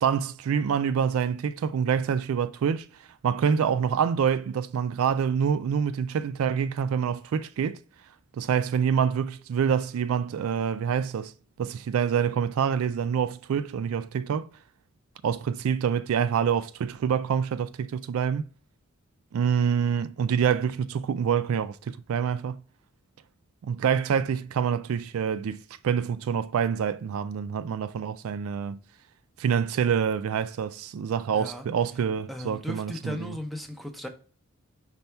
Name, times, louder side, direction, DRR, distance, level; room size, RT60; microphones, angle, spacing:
voice 1, 0.0-2.9 3.2-7.8 8.4-11.3 11.6-14.5 15.2-18.4 19.3-22.6 23.6-28.8 29.4-33.4, right 7 dB, 75° right, 0.3 m, -26 dB
voice 2, 31.3-31.6 32.3-34.1, left 1 dB, ahead, 0.5 m, -36 dB
5.3 x 2.3 x 4.4 m
head